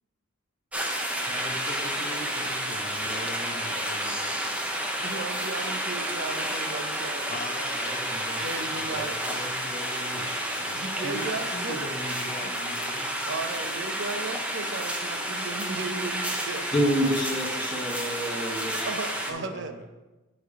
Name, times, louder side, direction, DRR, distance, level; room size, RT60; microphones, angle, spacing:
sound 1, 0.7-19.3, right 1 dB, 5° right, 0.6 m, -31 dB
voice 1, 1.2-4.4 7.3-13.3 19.3-19.8, left 1 dB, 40° left, 0 dB, 0.8 m, -40 dB
voice 2, 5.0-7.3 8.4-9.1 10.7-11.8 13.2-16.7 18.8-19.7, right 3 dB, 60° right, 8 dB, 0.6 m, -35 dB
voice 3, 16.7-18.9, equal, 20° left, -1 dB, 1.1 m, -27 dB
9.2 x 3.3 x 4.9 m, 1.1 s
head